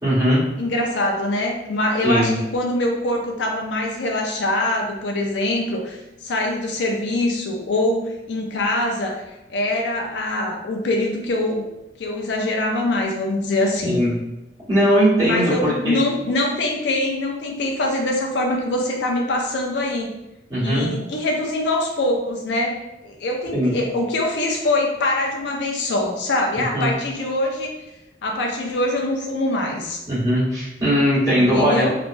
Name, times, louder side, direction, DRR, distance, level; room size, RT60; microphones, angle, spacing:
voice 1, 0.0-0.4 2.0-2.3 13.8-14.1 14.7-16.0 20.5-20.9 23.5-23.7 26.5-26.9 30.1-31.8, equal, 20° right, -12 dB, 1.4 m, -19 dB
voice 2, 0.6-9.1 9.5-11.6 12.0-14.0 15.2-20.1 20.6-27.7 28.2-30.0 31.5-32.0, left 1 dB, 70° left, 1 dB, 0.4 m, -23 dB
2.9 x 2.2 x 2.5 m, 0.98 s
head